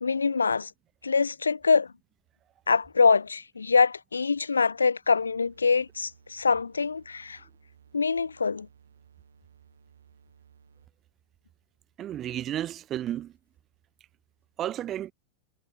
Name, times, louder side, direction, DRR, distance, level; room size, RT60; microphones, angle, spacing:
voice 1, 0.0-0.7 1.0-1.9 2.7-7.4 7.9-8.7, left 5 dB, 75° left, 0.6 m, -24 dB
sound 1, 5.2-11.1, right 7 dB, 70° right, 5.2 m, -58 dB
voice 2, 12.0-13.3 14.6-15.1, right 11 dB, 30° right, 0.7 m, -32 dB
figure-of-eight pair, 90°, 0 cm